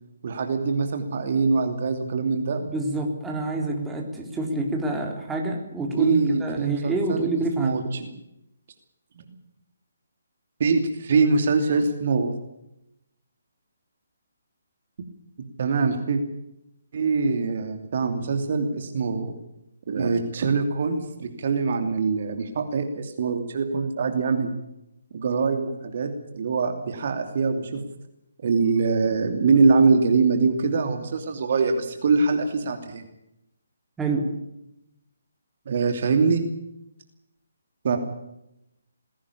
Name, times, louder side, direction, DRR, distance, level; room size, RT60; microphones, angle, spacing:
voice 1, 0.2-2.6 6.0-7.3 7.6-8.1 10.6-12.3 15.6-16.2 16.9-19.3 19.9-24.6 25.1-27.8 28.4-33.0 35.7-36.4 37.8-38.0, right 4 dB, 45° right, 6 dB, 2.8 m, -23 dB
voice 2, 2.7-7.8 34.0-34.3, right 2 dB, 10° right, 1 dB, 3.7 m, -27 dB
21.0 x 17.0 x 8.5 m, 0.83 s
figure-of-eight pair, 140°, 0 cm